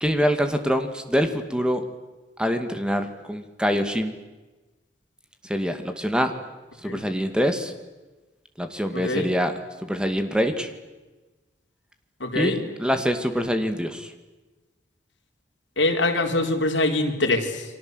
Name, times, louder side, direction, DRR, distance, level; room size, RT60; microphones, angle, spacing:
voice 1, 0.0-1.8 2.4-4.1 5.4-6.3 6.8-7.7 8.6-9.5 9.8-10.7 12.3-12.5 12.8-14.1, equal, 5° right, 8 dB, 2.2 m, -24 dB
voice 2, 8.9-9.3 12.2-12.6 15.8-17.6, left 2 dB, 80° left, 3 dB, 4.1 m, -24 dB
30.0 x 23.5 x 8.0 m, 1.2 s
head